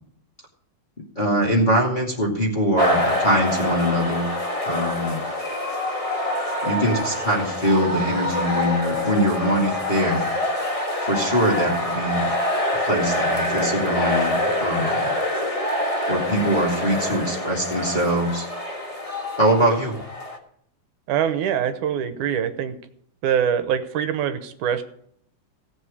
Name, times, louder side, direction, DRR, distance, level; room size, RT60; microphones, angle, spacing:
voice 1, 1.2-4.3 4.6-5.2 6.6-10.3 11.0-12.3 12.8-15.1 16.1-18.5 19.4-20.0, equal, 15° left, -4 dB, 2.1 m, -22 dB
sound 1, 2.8-20.4, left 1 dB, 35° left, 0.5 m, -25 dB
voice 2, 21.1-22.8 23.2-24.8, right 9 dB, 80° right, 9 dB, 2.4 m, -23 dB
17.0 x 7.8 x 5.0 m, 0.69 s
omnidirectional pair, 3.5 m